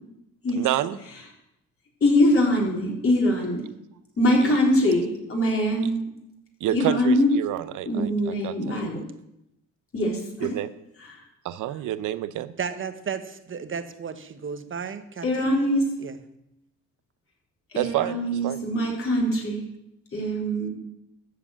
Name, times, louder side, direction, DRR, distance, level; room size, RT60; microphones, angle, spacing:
voice 1, 0.5-1.0 4.4-4.6 6.6-8.8 10.4-10.7 11.4-12.5 17.7-18.6, right 13 dB, 85° right, 14 dB, 0.8 m, -28 dB
voice 2, 2.0-3.6 4.2-6.0 6.7-7.3 7.9-9.0 9.9-10.5 15.2-15.8 17.7-19.6 20.1-20.7, left 1 dB, 45° left, -2 dB, 3.9 m, -23 dB
voice 3, 12.6-15.5 16.0-16.2, right 6 dB, 40° right, 9 dB, 1.1 m, -33 dB
13.5 x 4.9 x 8.5 m, 0.84 s
cardioid pair, 90°, 30 cm